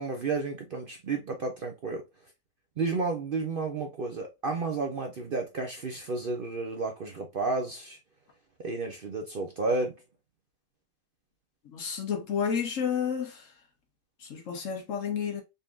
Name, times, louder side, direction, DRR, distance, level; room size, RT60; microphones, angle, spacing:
voice 1, 0.0-2.0 2.8-8.0 8.6-10.0, right 3 dB, 50° right, 0.7 m, -31 dB
voice 2, 11.7-13.3 14.3-15.4, left 7 dB, 60° left, 1.3 m, -30 dB
4.1 x 3.5 x 2.4 m
omnidirectional pair, 1.5 m